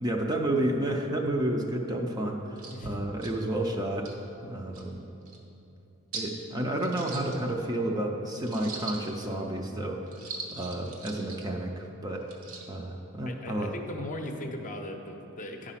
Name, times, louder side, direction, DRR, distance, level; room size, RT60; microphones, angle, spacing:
voice 1, 0.0-4.1 4.4-5.0 6.1-10.0 10.5-12.3 12.7-13.7, right 1 dB, 20° right, 1 dB, 0.5 m, -31 dB
sound 1, 2.2-2.3 2.6-2.7 3.2-3.3 3.9-4.1 4.7-4.8 5.2-5.4 6.1-6.3 6.8-7.8 8.4-9.3 10.1-11.4 12.2-12.7, right 3 dB, 70° right, 1.2 m, -41 dB
voice 2, 2.7-3.1 13.3-15.7, left 1 dB, 35° left, 3 dB, 0.7 m, -38 dB
10.5 x 5.0 x 5.7 m, 3.0 s
head